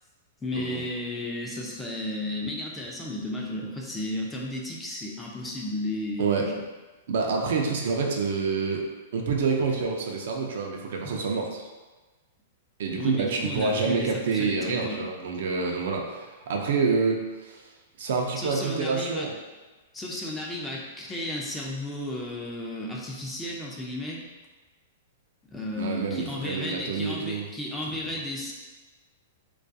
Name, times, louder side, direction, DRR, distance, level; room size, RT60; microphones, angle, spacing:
voice 1, 0.4-6.6 13.0-15.0 18.4-19.3 19.9-24.2 25.5-28.5, left 1 dB, 10° left, -3 dB, 0.4 m, -33 dB
voice 2, 7.1-8.8 9.1-11.7 12.8-17.6 18.0-19.4 25.7-27.4 27.9-28.0, right 4 dB, 70° right, 1 dB, 0.4 m, -27 dB
2.3 x 2.2 x 2.6 m, 1.2 s
hypercardioid pair, 125°, 0 cm